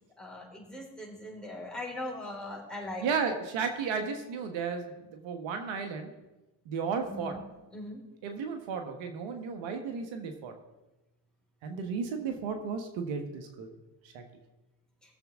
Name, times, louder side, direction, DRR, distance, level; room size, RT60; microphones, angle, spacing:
voice 1, 0.2-3.0 7.1-7.4 7.7-8.0, left 1 dB, ahead, -3 dB, 5.1 m, -40 dB
voice 2, 3.0-6.1 6.7-7.3 8.2-10.5 11.6-13.7 14.1-14.2, right 5 dB, 80° right, 5 dB, 1.6 m, -34 dB
21.0 x 7.2 x 3.7 m, 1.0 s
supercardioid pair, 65°, 46 cm